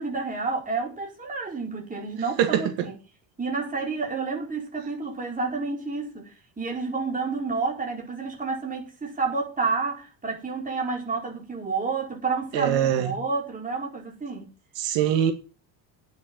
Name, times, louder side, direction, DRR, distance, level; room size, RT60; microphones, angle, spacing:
voice 1, 0.0-2.9 3.4-14.5, right 4 dB, 20° right, 4.9 m, -30 dB
voice 2, 2.4-2.9 12.5-13.2 14.8-15.3, right 10 dB, 75° right, 2.1 m, -23 dB
9.6 x 7.0 x 8.8 m
cardioid pair, 130°, 43 cm